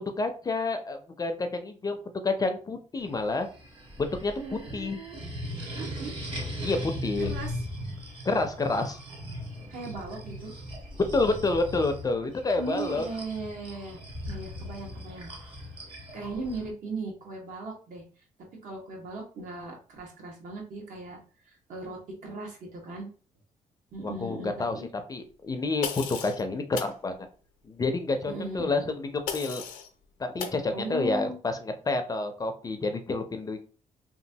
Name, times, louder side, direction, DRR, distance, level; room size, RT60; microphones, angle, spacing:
voice 1, 0.0-2.0 2.2-3.5 4.0-4.3 4.7-5.0 6.6-7.3 8.2-9.0 11.1-13.1 24.0-24.8 25.1-27.1 27.6-29.6 30.2-33.7, left 3 dB, 25° left, 7 dB, 0.4 m, -29 dB
sound 1, 3.0-16.7, equal, 40° right, 1.2 m, -39 dB
voice 2, 4.4-5.2 5.8-6.2 7.2-7.6 9.7-10.6 12.6-14.0 14.3-15.5 16.1-18.0 18.6-23.1 23.9-24.9 28.2-28.7 30.7-31.4, right 3 dB, 70° right, 0 dB, 1.2 m, -38 dB
sound 2, 25.8-26.4 26.8-27.0 29.3-29.9 30.4-30.6, left 7 dB, 85° left, 0.5 m, -35 dB
3.0 x 2.5 x 2.7 m, 0.38 s
cardioid pair, 105°, 14 cm